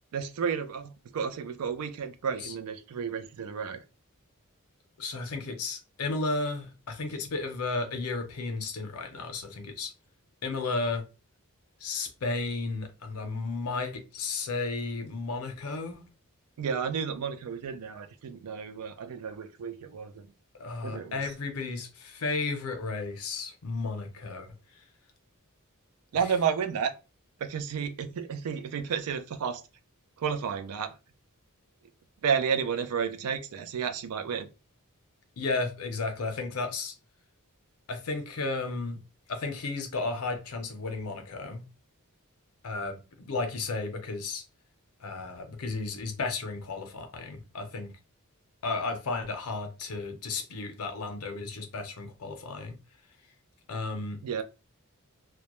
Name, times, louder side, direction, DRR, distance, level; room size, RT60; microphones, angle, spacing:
voice 1, 0.1-3.8 16.6-20.3 20.8-21.3 26.1-26.9 27.4-29.6 30.2-31.0 32.2-34.5 54.2-54.4, right 7 dB, 80° right, 0.4 m, -31 dB
voice 2, 5.0-9.9 10.4-11.0 11.8-16.0 20.6-24.5 35.4-36.9 37.9-39.0 39.3-41.6 42.6-44.4 45.0-47.9 48.6-52.8 53.7-54.2, left 3 dB, 70° left, 0.6 m, -33 dB
2.2 x 2.1 x 2.9 m
head